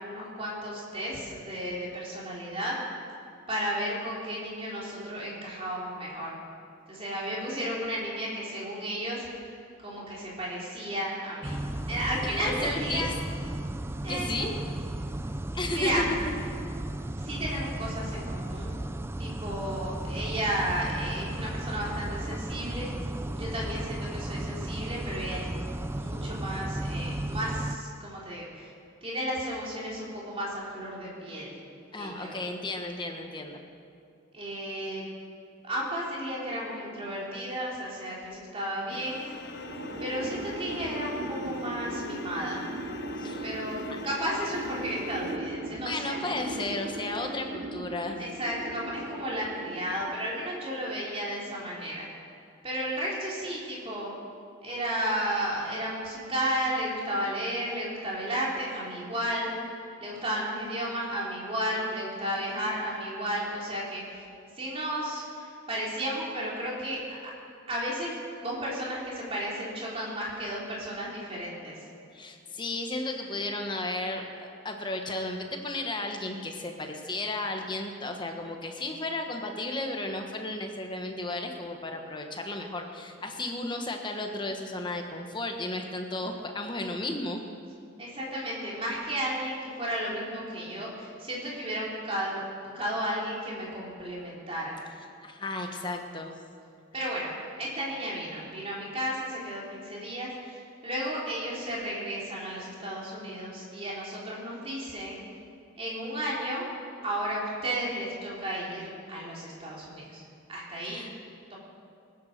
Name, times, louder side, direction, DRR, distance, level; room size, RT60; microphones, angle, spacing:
voice 1, 0.0-2.8 3.5-6.4 6.9-9.5 9.8-11.6 11.9-13.1 14.0-14.5 15.7-16.1 17.2-18.7 19.2-22.9 23.4-25.5 25.9-28.7 29.0-31.6 31.9-32.4 34.3-35.1 35.6-39.2 40.0-42.6 43.4-46.2 48.2-52.1 52.6-54.1 54.6-59.5 60.0-64.2 64.6-67.2 67.7-68.2 68.4-71.9 88.0-94.8 96.9-105.2 105.8-106.7 107.0-110.2 110.5-111.1 111.5-111.6, equal, 30° right, -5 dB, 3.5 m, -33 dB
sound 1, 11.4-27.8, right 1 dB, 10° right, 0.4 m, -35 dB
voice 2, 12.2-13.1 14.1-14.5 15.5-16.0 31.9-33.6 43.2-43.4 43.9-44.0 45.8-48.2 72.1-87.4 95.2-96.3 110.8-111.1, left 2 dB, 25° left, 3 dB, 1.2 m, -34 dB
sound 2, 38.9-45.4, left 3 dB, 55° left, 0.7 m, -43 dB
sound 3, 39.4-50.5, right 1 dB, 50° right, 0.9 m, -38 dB
20.5 x 9.5 x 6.6 m, 2.4 s
head